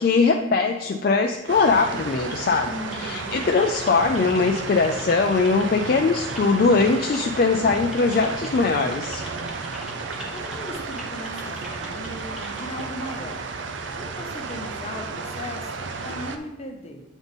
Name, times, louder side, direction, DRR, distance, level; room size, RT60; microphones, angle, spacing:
voice 1, 0.0-9.2, left 4 dB, 50° left, 4 dB, 0.3 m, -21 dB
sound 1, 1.5-16.4, right 4 dB, 75° right, 0.5 m, -33 dB
voice 2, 2.6-3.5 10.3-13.5 13.9-17.0, left 1 dB, 30° left, 2 dB, 0.8 m, -37 dB
Typing, 2.9-12.8, equal, 5° right, 0.9 m, -42 dB
8.1 x 3.5 x 4.0 m, 1.0 s
head